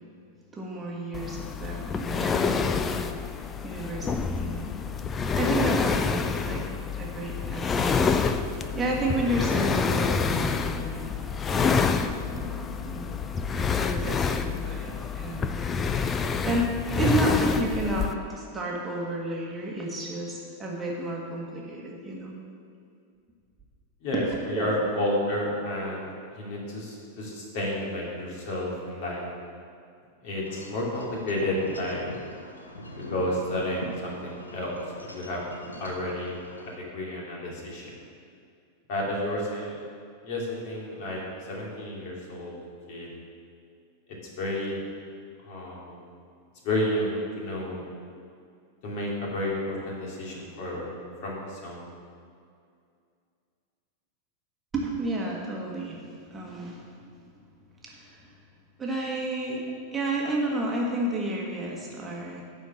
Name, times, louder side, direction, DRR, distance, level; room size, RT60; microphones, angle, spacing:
voice 1, 0.5-3.1 3.6-4.7 5.3-8.2 8.7-11.1 11.5-13.1 13.5-15.6 16.4-22.3 24.5-24.7 54.7-57.0 57.8-58.3 58.8-59.6 59.9-62.4, right 1 dB, 15° right, -3 dB, 1.5 m, -31 dB
sound 1, 1.1-18.1, left 5 dB, 20° left, 0.5 m, -27 dB
voice 2, 24.0-29.2 30.2-32.0 33.0-34.8 35.1-35.4 35.8-37.9 38.9-39.8 40.2-41.2 41.5-42.6 42.9-43.1 44.4-44.8 45.4-46.0 46.6-47.8 48.8-50.8 51.2-51.9, left 1 dB, 45° left, -3 dB, 2.6 m, -31 dB
Wind chime / Wind, 30.4-36.7, left 1 dB, 80° left, 1.0 m, -42 dB
11.0 x 4.6 x 7.2 m, 2.3 s
figure-of-eight pair, 90°, 0 cm